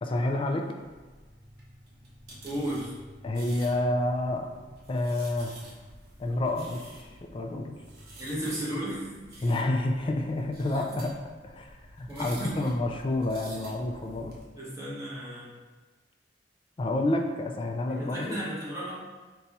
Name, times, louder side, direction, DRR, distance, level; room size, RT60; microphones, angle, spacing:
voice 1, 0.0-0.7 3.2-4.5 4.9-5.6 6.2-7.8 9.4-11.1 11.4-14.3 16.8-18.4, left 1 dB, 30° left, 3 dB, 0.3 m, -29 dB
sound 1, 0.8-14.4, right 1 dB, 60° right, 0.9 m, -49 dB
voice 2, 2.4-2.9 8.2-9.5 10.8-11.0 12.1-12.7 14.6-15.5 17.9-19.0, right 1 dB, 20° right, -7 dB, 1.1 m, -35 dB
4.0 x 2.3 x 4.1 m, 1.3 s
head